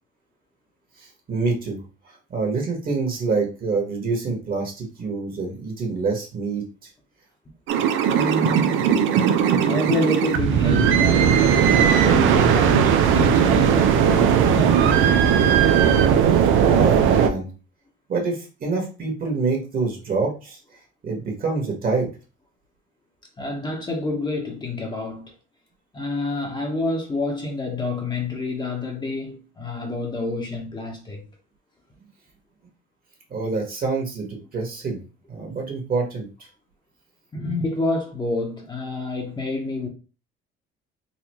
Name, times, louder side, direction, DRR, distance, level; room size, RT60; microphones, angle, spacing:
voice 1, 1.0-6.6 16.3-17.5 18.1-20.6 21.0-22.1 33.3-35.0 35.3-36.5, right 4 dB, 45° right, 1.7 m, -26 dB
sound 1, 7.7-17.3, right 8 dB, 70° right, 0.5 m, -18 dB
voice 2, 8.1-8.9 9.7-15.3 23.4-25.3 25.9-31.2 37.3-39.9, left 2 dB, 20° left, 1.1 m, -28 dB
4.0 x 2.6 x 3.0 m
supercardioid pair, 90°, 21 cm